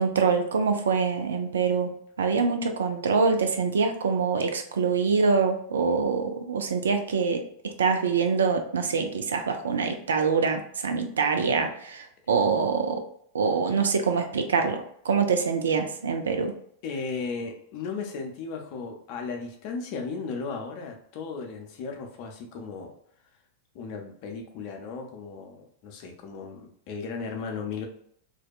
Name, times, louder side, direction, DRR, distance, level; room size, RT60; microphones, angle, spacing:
voice 1, 0.0-1.9 2.2-13.0 13.3-16.5, right 5 dB, 65° right, 5 dB, 0.3 m, -25 dB
voice 2, 16.8-22.9 23.7-27.9, left 4 dB, 45° left, 2 dB, 0.5 m, -35 dB
2.6 x 2.1 x 2.3 m, 0.65 s
figure-of-eight pair, 90°, 0 cm